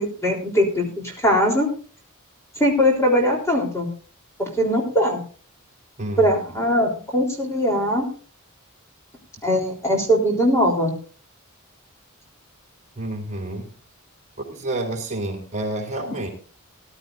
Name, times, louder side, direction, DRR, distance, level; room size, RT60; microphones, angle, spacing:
voice 1, 0.0-1.7 2.6-3.9 4.4-5.2 6.2-8.1 9.4-10.9, equal, 15° left, 0 dB, 3.6 m, -20 dB
voice 2, 13.0-13.7 14.5-16.3, right 1 dB, 35° right, 1 dB, 3.8 m, -29 dB
19.5 x 12.0 x 2.6 m, 0.40 s
head